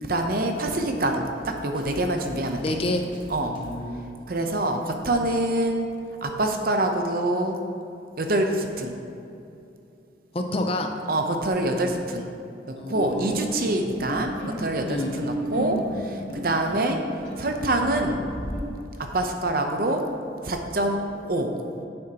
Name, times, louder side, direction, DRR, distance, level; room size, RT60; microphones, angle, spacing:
voice 1, 0.0-2.8 3.3-3.6 4.3-5.9 6.2-7.6 8.2-8.9 11.1-12.2 12.9-14.3 14.6-17.0 17.4-18.2 19.1-20.0 20.4-21.5, right 1 dB, 50° right, 4 dB, 0.7 m, -25 dB
Drum kit, 1.4-3.8, right 1 dB, 25° right, 1.2 m, -45 dB
voice 2, 2.6-3.0 3.4-4.1 10.3-10.9 12.8-13.4 14.8-15.1, left 1 dB, 30° left, 4 dB, 0.5 m, -29 dB
sound 1, 12.9-18.6, equal, 90° left, 2.1 m, -34 dB
9.9 x 7.8 x 2.9 m, 2.7 s
head